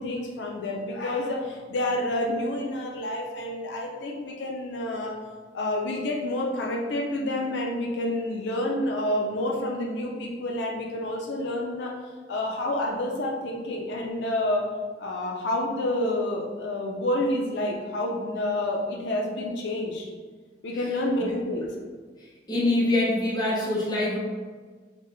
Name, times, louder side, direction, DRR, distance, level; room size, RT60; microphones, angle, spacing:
voice 1, 0.0-5.2 5.5-11.9 12.3-14.7 15.0-20.1 20.6-21.7, left 1 dB, 80° left, 0 dB, 0.5 m, -29 dB
voice 2, 22.5-24.2, left 2 dB, 25° left, -5 dB, 0.7 m, -24 dB
4.0 x 2.0 x 3.1 m, 1.4 s
head